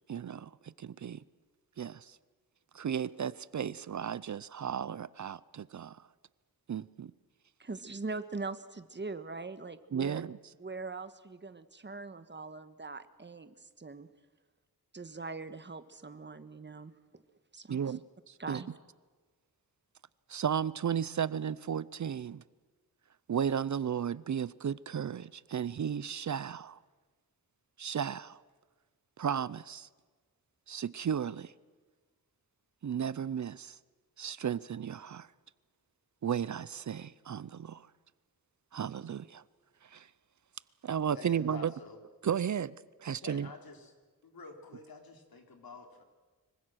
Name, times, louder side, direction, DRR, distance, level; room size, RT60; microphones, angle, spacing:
voice 1, 0.1-1.2 1.8-2.2 2.7-6.1 6.7-7.1 9.9-10.4 17.7-18.0 18.3-18.6 20.3-22.4 23.3-26.8 27.8-28.4 29.2-29.9 30.7-31.5 32.8-33.8 34.2-35.3 36.2-37.9 38.7-39.4 39.8-40.1 40.8-41.7 42.2-43.5, right 8 dB, 55° right, 0.6 m, -34 dB
voice 2, 7.6-10.2 10.6-14.1 14.9-17.2 17.5-18.0 18.4-18.7, right 3 dB, 30° right, 1.4 m, -42 dB
voice 3, 41.1-42.0 43.2-43.9 44.2-46.0, left 4 dB, 75° left, 3.6 m, -49 dB
25.5 x 23.5 x 6.4 m
wide cardioid pair, 90°, 36 cm